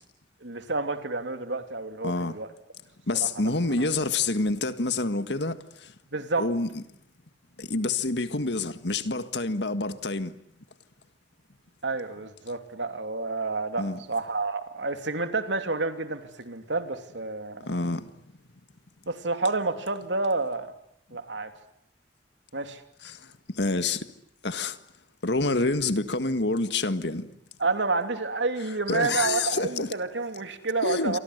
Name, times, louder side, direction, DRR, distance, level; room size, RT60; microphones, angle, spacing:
voice 1, 0.4-2.5 3.1-3.3 3.8-3.9 6.1-6.5 11.8-17.7 19.1-20.7 21.1-21.5 22.5-22.8 27.6-31.2, right 3 dB, 85° right, 3.0 m, -29 dB
voice 2, 2.0-2.4 3.1-5.9 6.4-6.8 7.6-10.3 13.8-14.0 17.6-18.1 23.0-24.1 24.4-24.8 25.2-27.3 28.9-29.9 30.8-31.2, left 3 dB, 70° left, 1.8 m, -27 dB
28.0 x 24.5 x 8.1 m
head